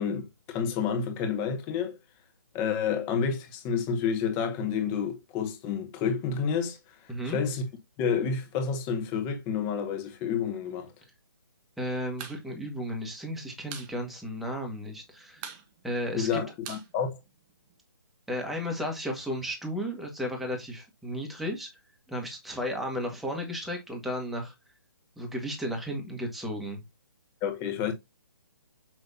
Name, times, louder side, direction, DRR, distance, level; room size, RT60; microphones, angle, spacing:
voice 1, 0.0-2.0 2.5-6.8 7.2-7.6 8.0-10.9 16.1-17.2 27.4-27.9, left 6 dB, 20° left, 1.8 m, -29 dB
voice 2, 11.8-15.4 15.8-16.4 18.3-21.7 22.1-24.5 25.2-26.8, equal, ahead, 1.6 m, -34 dB
sound 1, 12.2-12.4 12.7-12.8 13.1-13.9 14.3-14.4 14.6-15.0 15.4-17.7, right 8 dB, 20° right, 1.0 m, -43 dB
6.8 x 6.2 x 2.8 m
hypercardioid pair, 155°, 13 cm